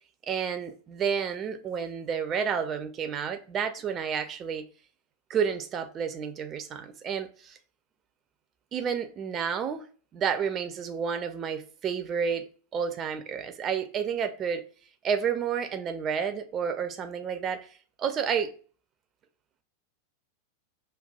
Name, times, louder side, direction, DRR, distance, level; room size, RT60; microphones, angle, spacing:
voice 1, 0.3-4.7 5.3-7.6 8.7-9.9 10.1-14.6 15.0-18.5, right 7 dB, 30° right, 0.4 m, -30 dB
5.3 x 2.2 x 2.2 m
figure-of-eight pair, 90°, 0 cm